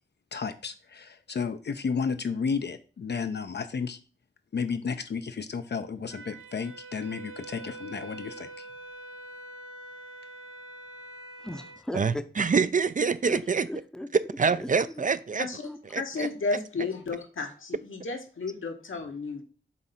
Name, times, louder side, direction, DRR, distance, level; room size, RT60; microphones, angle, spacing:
voice 1, 0.3-4.0 4.5-8.7, left 5 dB, 55° left, 0.5 m, -32 dB
Wind instrument woodwind instrument, 6.1-11.8, right 2 dB, 80° right, 0.8 m, -44 dB
voice 2, 11.4-12.3 13.2-14.1 14.5-14.7 15.0-15.1 15.6-16.0, left 1 dB, 5° left, 0.7 m, -37 dB
voice 3, 11.9-13.7 14.4-15.5 15.9-16.3, right 5 dB, 40° right, 0.4 m, -26 dB
voice 4, 16.0-19.4, left 3 dB, 80° left, 1.4 m, -33 dB
7.4 x 2.7 x 5.7 m
wide cardioid pair, 80°, 20 cm